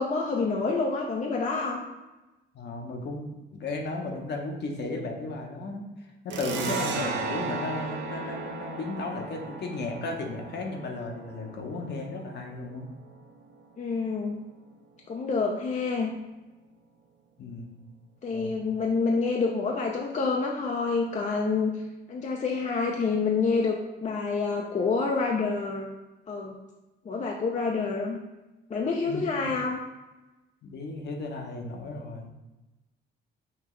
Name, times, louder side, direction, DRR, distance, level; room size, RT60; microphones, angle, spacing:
voice 1, 0.0-1.8 6.8-7.2 13.8-14.4 15.1-16.1 18.2-21.7 22.1-25.9 26.3-26.5 27.0-28.2 28.7-29.8, left 4 dB, 35° left, 0 dB, 0.5 m, -28 dB
voice 2, 2.5-12.9 17.4-17.7 18.3-18.6 29.0-29.5 30.6-32.3, left 3 dB, 60° left, 2 dB, 0.9 m, -35 dB
sound 1, 6.3-13.5, right 4 dB, 65° right, 0.6 m, -35 dB
5.8 x 2.8 x 3.1 m, 1.1 s
cardioid pair, 90°, 20 cm